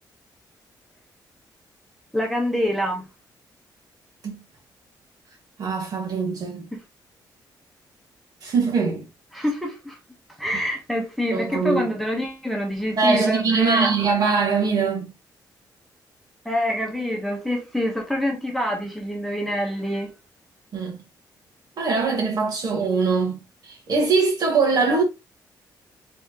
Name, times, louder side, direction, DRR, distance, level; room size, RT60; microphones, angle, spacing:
voice 1, 2.1-3.1 9.3-10.0 10.4-13.9 16.4-20.1, equal, ahead, 1.1 m, -26 dB
voice 2, 5.6-6.7 8.4-9.1 11.3-11.9 13.0-15.1 20.7-21.0 21.8-23.4 23.6-25.0, right 4 dB, 55° right, 1.7 m, -22 dB
4.2 x 3.4 x 3.0 m
cardioid pair, 130°, 8 cm